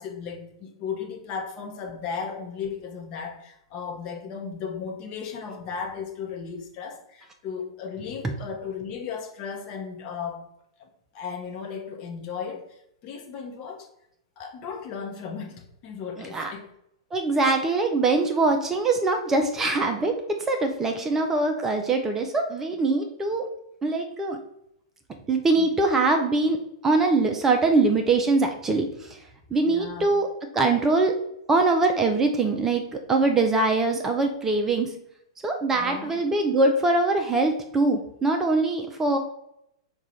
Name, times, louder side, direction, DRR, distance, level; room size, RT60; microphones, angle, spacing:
voice 1, 0.0-10.4 10.8-10.9 11.1-12.7 13.0-13.9 14.4-16.7 20.9-21.1 25.6-25.7 29.7-30.1 35.7-36.2, left 6 dB, 35° left, 2 dB, 0.8 m, -35 dB
voice 2, 16.2-16.5 17.1-20.1 20.4-23.5 23.8-24.4 25.3-26.6 26.8-29.1 29.5-30.3 30.5-31.1 31.5-34.9 35.4-39.2, right 3 dB, 15° right, 4 dB, 0.5 m, -23 dB
4.9 x 2.3 x 4.1 m, 0.78 s
figure-of-eight pair, 105°, 3 cm